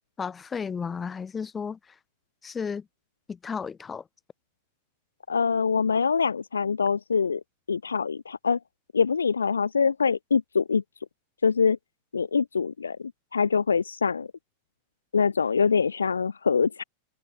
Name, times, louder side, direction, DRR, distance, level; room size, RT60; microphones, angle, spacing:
voice 1, 0.2-1.8 2.4-2.8 3.3-4.0, left 6 dB, 20° left, 6.8 m, -33 dB
voice 2, 5.3-7.4 7.7-8.6 8.9-10.8 11.4-11.8 12.1-14.3 15.1-16.8, left 5 dB, 75° left, 3.2 m, -24 dB
figure-of-eight pair, 90°, 0 cm